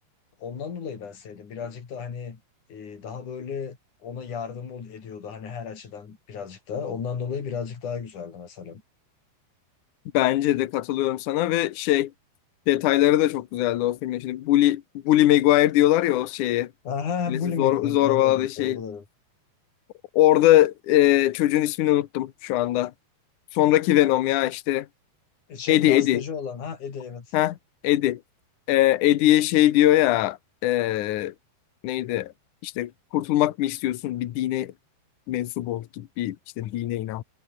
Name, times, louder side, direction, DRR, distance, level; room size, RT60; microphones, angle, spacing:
voice 1, 0.4-2.4 2.7-8.8 16.8-19.0 25.5-27.3, left 6 dB, 45° left, 4.7 m, -33 dB
voice 2, 10.1-12.1 12.7-16.7 17.3-18.8 20.1-22.9 23.5-24.9 25.7-26.2 27.3-27.6 27.8-28.2 28.7-31.3 31.8-32.3 32.6-34.7 35.3-37.2, left 14 dB, 85° left, 1.7 m, -21 dB
omnidirectional pair, 5.2 m